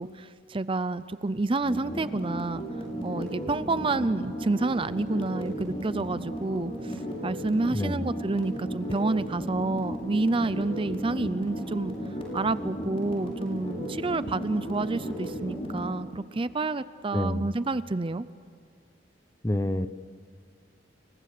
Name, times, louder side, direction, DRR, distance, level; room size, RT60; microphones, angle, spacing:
voice 1, 0.0-2.6 3.0-11.9 12.3-18.2, right 2 dB, 30° right, 15 dB, 0.6 m, -29 dB
sound 1, 1.6-15.9, equal, 30° left, 6.5 m, -35 dB
voice 2, 7.7-8.1 17.1-17.5 19.4-19.9, left 1 dB, 15° left, 13 dB, 0.8 m, -27 dB
29.0 x 23.5 x 6.7 m, 2.3 s
head